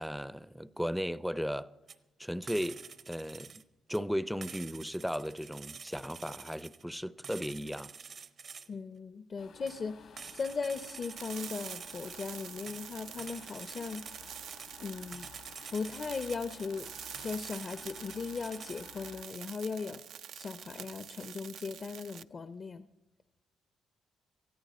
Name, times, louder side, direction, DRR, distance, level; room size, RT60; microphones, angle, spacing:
voice 1, 0.0-1.7 2.2-3.6 3.9-7.9, equal, ahead, 0.5 m, -36 dB
sound 1, 1.9-2.0 2.5-3.6 3.9-4.0 4.4-6.8 7.2-8.7 9.7-9.8 10.2-12.3 12.7-14.7 15.1-16.7 17.1-18.9, right 6 dB, 50° right, 0.8 m, -48 dB
voice 2, 8.7-14.0 14.8-15.3 15.7-16.9 17.2-20.0 20.3-22.9, left 5 dB, 40° left, 0.6 m, -38 dB
sound 2, 9.4-19.2, left 7 dB, 70° left, 1.4 m, -54 dB
sound 3, 11.2-22.2, right 9 dB, 70° right, 0.4 m, -47 dB
19.0 x 13.5 x 4.2 m
cardioid pair, 90°, 0 cm